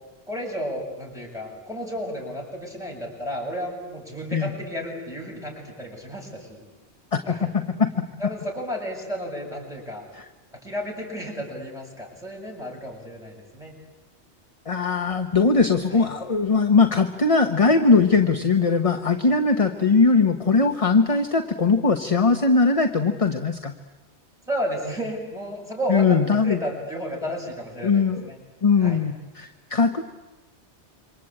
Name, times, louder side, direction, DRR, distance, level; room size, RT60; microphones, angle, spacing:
voice 1, 0.3-6.6 7.3-7.5 8.2-10.0 10.6-13.7 15.9-16.0 19.7-19.8 24.5-28.4 28.8-29.0, equal, 5° right, -2 dB, 7.1 m, -32 dB
voice 2, 7.1-7.9 10.1-10.2 14.7-23.7 25.9-26.6 27.8-28.3 28.6-30.0, left 4 dB, 30° left, 6 dB, 1.2 m, -20 dB
27.5 x 24.5 x 8.8 m, 1.1 s
omnidirectional pair, 1.2 m